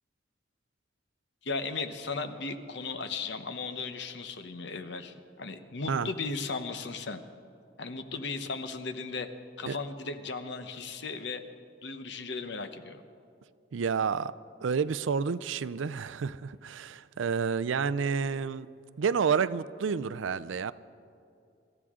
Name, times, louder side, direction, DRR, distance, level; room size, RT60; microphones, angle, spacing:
voice 1, 1.4-7.2 7.8-9.3 9.6-11.4 11.8-13.0, left 4 dB, 65° left, 9 dB, 0.9 m, -36 dB
voice 2, 13.7-14.3 14.6-18.7 19.0-20.7, right 6 dB, 90° right, 16 dB, 0.4 m, -29 dB
25.0 x 13.5 x 3.7 m, 2.5 s
head